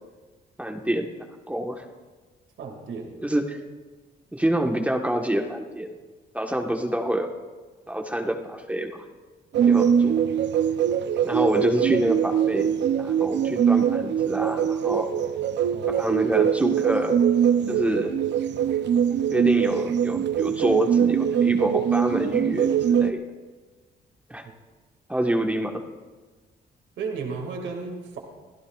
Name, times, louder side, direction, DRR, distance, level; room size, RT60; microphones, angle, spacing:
voice 1, 0.6-1.1 1.5-1.8 3.2-3.6 4.3-5.9 6.3-7.3 7.9-9.0 9.7-10.1 11.2-12.7 13.0-15.1 16.0-17.2 17.7-18.1 19.3-23.2 24.3-24.4 25.1-25.7, right 1 dB, 5° right, 3 dB, 1.3 m, -26 dB
voice 2, 2.6-3.1 9.6-9.8 15.7-16.1 27.0-28.2, right 4 dB, 85° right, 2 dB, 2.2 m, -34 dB
sound 1, 9.5-23.1, right 8 dB, 70° right, 0.6 m, -22 dB
24.5 x 16.0 x 2.4 m, 1.3 s
cardioid pair, 110°, 19 cm